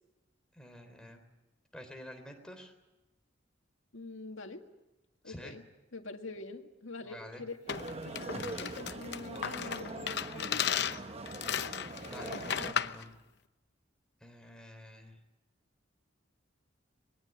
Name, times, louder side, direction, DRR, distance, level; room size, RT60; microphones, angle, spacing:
voice 1, 0.5-1.3 1.7-2.7 5.2-5.6 7.0-7.5 12.0-13.1 14.2-15.2, equal, 5° left, 4 dB, 3.6 m, -49 dB
voice 2, 3.9-4.6 5.2-5.6 5.9-7.6 8.0-11.0, left 3 dB, 85° left, 4 dB, 2.0 m, -45 dB
sound 1, 7.7-13.0, left 8 dB, 60° left, 0.8 m, -35 dB
sound 2, 7.7-12.7, right 2 dB, 30° right, 1.0 m, -42 dB
24.5 x 21.0 x 9.1 m, 1.0 s
head